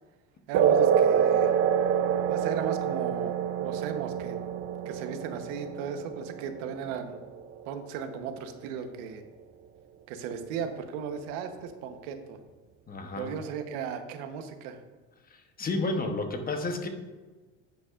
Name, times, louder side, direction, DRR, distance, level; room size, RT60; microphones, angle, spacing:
sound 1, 0.5-7.5, right 8 dB, 40° right, 0.4 m, -26 dB
voice 1, 0.5-1.5 2.3-4.4 4.8-7.2 7.7-9.2 10.1-12.4 13.2-14.8, right 7 dB, 85° right, 7 dB, 1.1 m, -36 dB
voice 2, 12.9-13.3 15.6-16.9, left 2 dB, 25° left, 5 dB, 0.9 m, -31 dB
10.0 x 8.3 x 2.5 m, 1.3 s
cardioid pair, 135°, 36 cm